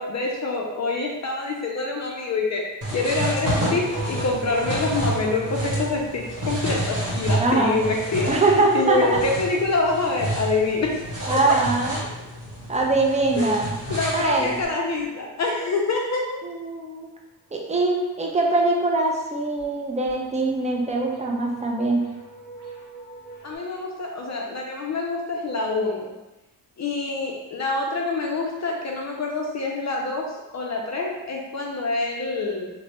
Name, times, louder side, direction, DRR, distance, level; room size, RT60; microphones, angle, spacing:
voice 1, 0.0-8.4 8.7-10.9 11.3-11.4 13.4-13.5 13.9-16.4 23.4-26.1 26.8-32.7, left 3 dB, 40° left, 0 dB, 0.5 m, -26 dB
sound 1, 2.8-14.6, right 1 dB, 35° right, 1.2 m, -29 dB
sound 2, 3.6-10.5 13.6-15.2 17.9-18.5 18.8-19.1 19.6-19.7 20.1-23.6, right 1 dB, 10° left, 1.1 m, -42 dB
voice 2, 7.4-7.8 8.3-9.2 11.3-12.0 12.7-13.7 14.1-14.5 16.4-17.1 17.5-22.0, right 2 dB, 15° right, 0 dB, 0.5 m, -22 dB
3.0 x 2.2 x 2.9 m, 1.0 s
cardioid pair, 75°, 42 cm